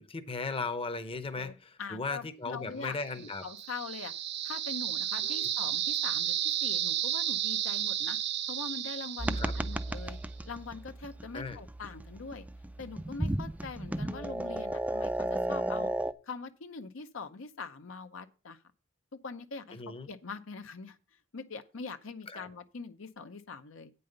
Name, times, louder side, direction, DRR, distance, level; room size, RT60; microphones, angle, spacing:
voice 1, 0.0-3.4 5.2-5.5 9.3-9.5 11.3-11.6 19.7-20.1 22.3-22.5, left 4 dB, 30° left, 0.8 m, -37 dB
voice 2, 1.3-4.1 4.4-8.2 8.5-10.2 10.5-12.4 12.8-15.9 16.2-18.6 19.2-21.0 21.3-23.9, left 4 dB, 75° left, 0.7 m, -43 dB
sound 1, 3.2-10.1, right 11 dB, 60° right, 0.6 m, -33 dB
sound 2, 9.2-16.1, right 1 dB, 5° right, 0.4 m, -34 dB
8.7 x 5.5 x 6.6 m
head